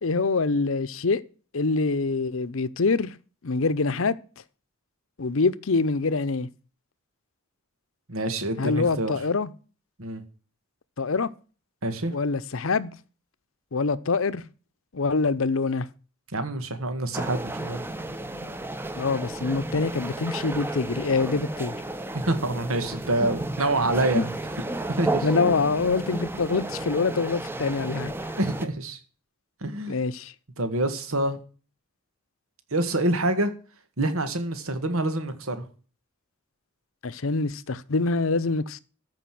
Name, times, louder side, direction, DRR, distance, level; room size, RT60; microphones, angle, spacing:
voice 1, 0.0-1.2 1.5-3.1 3.4-4.2 5.2-6.5 8.6-9.5 11.0-11.3 12.1-12.9 13.7-14.4 14.9-15.9 19.0-21.7 24.1-24.3 25.2-28.1 29.9-30.3 37.0-38.8, left 4 dB, 70° left, 0.7 m, -25 dB
voice 2, 8.1-9.1 10.0-10.2 11.8-12.1 16.3-17.8 22.1-24.3 24.9-25.3 28.4-29.0 29.6-30.0 30.6-31.4 32.7-33.5 34.0-35.7, right 2 dB, 80° right, 1.9 m, -26 dB
sound 1, 17.1-28.7, right 2 dB, 10° right, 0.8 m, -33 dB
14.0 x 5.4 x 7.6 m
head